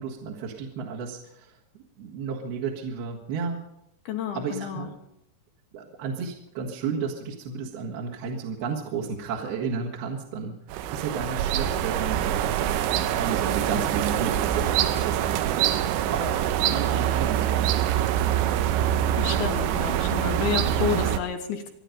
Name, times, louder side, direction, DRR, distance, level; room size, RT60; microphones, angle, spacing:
voice 1, 0.0-1.6 2.0-3.7 4.3-5.0 5.7-12.5 13.1-18.1, right 6 dB, 65° right, -4 dB, 3.4 m, -33 dB
voice 2, 4.1-4.9 16.6-17.1 19.2-21.7, left 7 dB, 70° left, 4 dB, 2.9 m, -31 dB
sound 1, 10.7-21.2, right 11 dB, 85° right, 3.1 m, -25 dB
27.0 x 10.0 x 5.2 m, 0.78 s
omnidirectional pair, 5.3 m